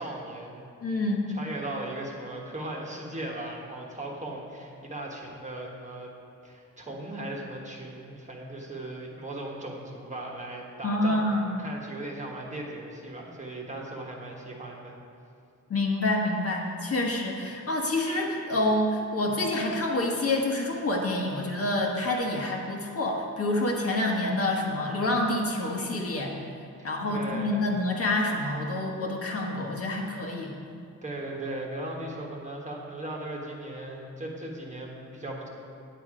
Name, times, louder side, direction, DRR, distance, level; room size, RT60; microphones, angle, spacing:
voice 1, 0.0-0.7 1.3-6.1 6.4-14.9 26.8-27.7 31.0-35.5, right 1 dB, 20° right, -1 dB, 1.3 m, -38 dB
voice 2, 0.8-1.3 10.8-11.5 15.7-26.3 26.8-30.5, left 1 dB, 45° left, -1 dB, 1.4 m, -27 dB
9.3 x 8.2 x 5.0 m, 2.4 s
wide cardioid pair, 145°, 32 cm